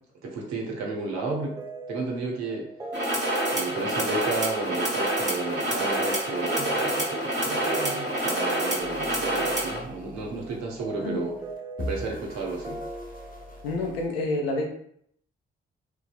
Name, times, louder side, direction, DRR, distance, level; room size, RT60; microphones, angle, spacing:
voice 1, 0.2-1.6 1.9-2.7 3.5-11.3 11.8-12.8, right 3 dB, 65° right, -1 dB, 0.8 m, -32 dB
sound 1, 1.1-14.1, right 2 dB, 15° right, 0.3 m, -41 dB
sound 2, 2.9-9.8, right 1 dB, 35° right, 1.3 m, -27 dB
sound 3, 8.8-14.1, left 1 dB, 30° left, 0.6 m, -42 dB
voice 2, 13.6-14.6, left 2 dB, 90° left, 2 dB, 0.5 m, -28 dB
2.6 x 2.3 x 2.3 m, 0.67 s
hypercardioid pair, 40°, 29 cm